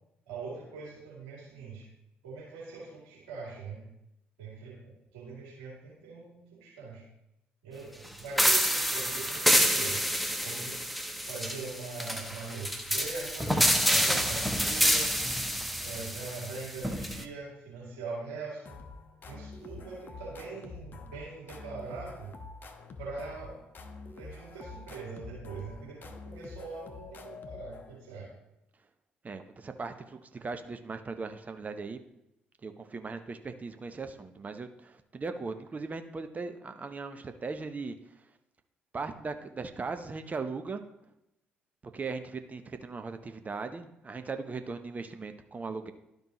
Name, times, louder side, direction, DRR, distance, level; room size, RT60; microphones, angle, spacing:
voice 1, 0.3-1.8 2.2-3.8 4.4-7.0 7.6-10.0 10.4-10.8 11.2-13.5 13.8-15.1 15.8-18.8 19.3-22.3 23.0-23.6 24.2-28.3, right 4 dB, 75° right, -6 dB, 2.5 m, -42 dB
sound 1, 8.4-17.2, equal, ahead, 0.8 m, -28 dB
sound 2, 18.7-28.2, left 4 dB, 40° left, 0.9 m, -47 dB
voice 2, 29.2-32.0 32.6-37.9 38.9-40.8 41.9-45.9, right 4 dB, 30° right, 8 dB, 0.7 m, -38 dB
12.0 x 5.3 x 3.0 m, 0.85 s
figure-of-eight pair, 45°, 5 cm